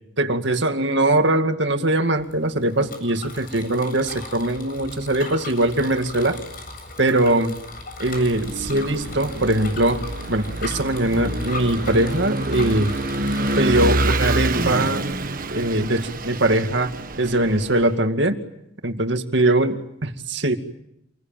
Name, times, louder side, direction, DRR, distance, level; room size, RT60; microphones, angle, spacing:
voice 1, 0.2-6.4 7.0-7.6 8.0-10.0 10.3-12.9 13.6-15.1 15.5-16.9 17.2-18.4 18.8-20.6, right 1 dB, 65° right, 6 dB, 2.3 m, -21 dB
Bicycle, 2.2-13.9, left 2 dB, 50° left, 7.9 m, -38 dB
Vehicle / Engine, 8.2-17.9, right 2 dB, 45° right, 1.4 m, -27 dB
28.0 x 21.5 x 9.1 m, 0.79 s
head